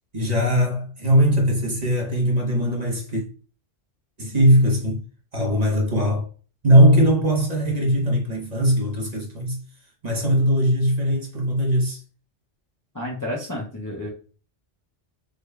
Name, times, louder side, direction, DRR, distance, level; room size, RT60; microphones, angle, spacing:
voice 1, 0.1-3.2 4.2-5.0 5.3-6.3 6.6-9.6 10.0-12.0, equal, 40° right, 0.9 m, -20 dB
voice 2, 12.9-14.1, left 1 dB, 20° left, 0.5 m, -30 dB
3.6 x 2.2 x 3.3 m
omnidirectional pair, 1.2 m